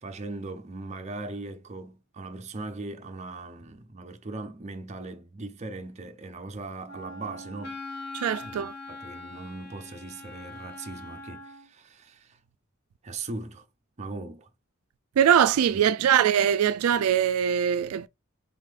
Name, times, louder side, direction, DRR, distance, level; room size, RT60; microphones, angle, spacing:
voice 1, 0.0-7.8 8.4-12.4 13.0-13.7 14.0-14.5 15.7-16.1, right 3 dB, 30° right, 0.6 m, -39 dB
Wind instrument woodwind instrument, 6.9-11.7, left 2 dB, 50° left, 1.5 m, -42 dB
voice 2, 8.1-8.7 15.2-18.1, right 9 dB, 85° right, 0.3 m, -22 dB
3.7 x 3.6 x 3.1 m
head